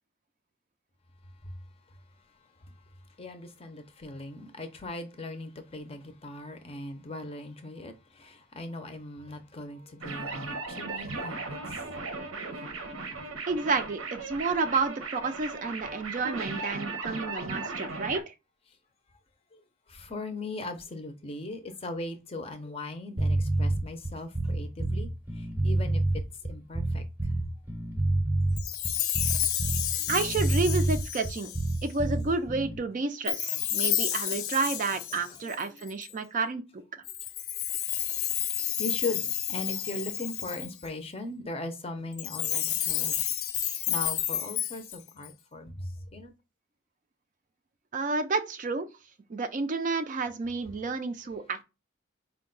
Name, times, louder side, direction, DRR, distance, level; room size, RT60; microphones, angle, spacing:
voice 1, 3.2-11.6 11.8-12.0 19.5-19.6 19.9-25.1 25.4-26.0 26.5-27.0 30.0-30.2 35.2-35.8 38.8-43.3 43.9-46.3 51.3-51.4, left 2 dB, 30° left, 0.5 m, -39 dB
sound 1, 10.0-18.2, right 3 dB, 85° right, 0.9 m, -37 dB
voice 2, 13.5-18.3 30.1-31.5 31.8-36.6 47.9-48.9 49.3-51.6, right 4 dB, 40° right, 0.4 m, -30 dB
sound 2, 23.2-32.8, right 2 dB, 10° right, 0.7 m, -28 dB
Chime, 28.6-31.9 33.3-36.1 37.0-40.9 42.1-45.3, left 11 dB, 85° left, 0.5 m, -31 dB
4.5 x 2.2 x 3.7 m
head